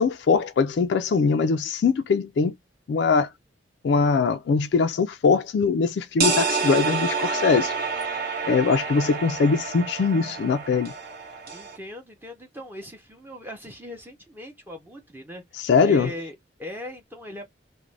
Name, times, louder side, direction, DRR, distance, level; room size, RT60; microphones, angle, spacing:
voice 1, 0.0-2.5 2.9-3.3 3.8-7.7 8.4-10.9 15.6-16.1, left 5 dB, 65° left, 0.3 m, -22 dB
sound 1, 6.2-11.8, right 4 dB, 50° right, 0.9 m, -28 dB
voice 2, 11.5-17.5, equal, 10° right, 0.7 m, -40 dB
2.5 x 2.1 x 3.1 m
head